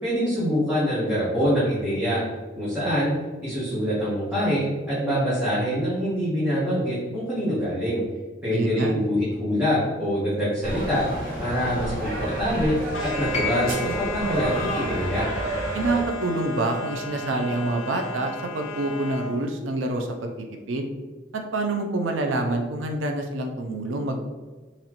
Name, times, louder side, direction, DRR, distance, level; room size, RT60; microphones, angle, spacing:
voice 1, 0.0-2.2 2.6-3.1 3.4-8.0 8.4-11.0 11.4-12.7 13.0-15.3, equal, 10° right, -11 dB, 1.2 m, -25 dB
voice 2, 8.5-8.9 15.7-20.9 21.3-24.2, right 2 dB, 90° right, 3 dB, 0.5 m, -27 dB
sound 1, 10.6-16.0, right 1 dB, 50° right, 1.2 m, -30 dB
sound 2, 12.9-19.4, left 1 dB, 85° left, 0.6 m, -34 dB
sound 3, 13.3-17.5 18.7-18.8, left 3 dB, 35° left, 0.7 m, -36 dB
4.0 x 3.0 x 2.9 m, 1.3 s
head